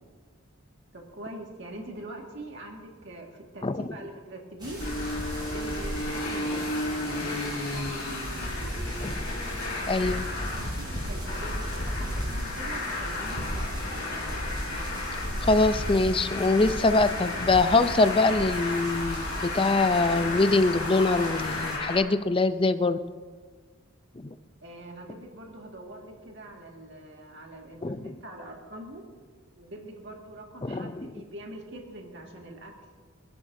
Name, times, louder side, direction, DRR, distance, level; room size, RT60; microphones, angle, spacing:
voice 1, 0.9-4.8 5.3-8.7 9.6-14.0 24.6-29.1 29.6-32.7, right 1 dB, 55° right, 0 dB, 1.9 m, -44 dB
sound 1, 4.6-21.8, equal, 20° right, 5.2 m, -40 dB
Traffic noise roadway noise, 4.8-22.0, left 1 dB, 50° left, 4.1 m, -32 dB
voice 2, 9.9-10.3 15.4-23.0 24.2-24.3 27.8-28.1 30.6-31.1, left 3 dB, 25° left, 11 dB, 0.5 m, -23 dB
27.5 x 11.5 x 2.7 m, 1.5 s
head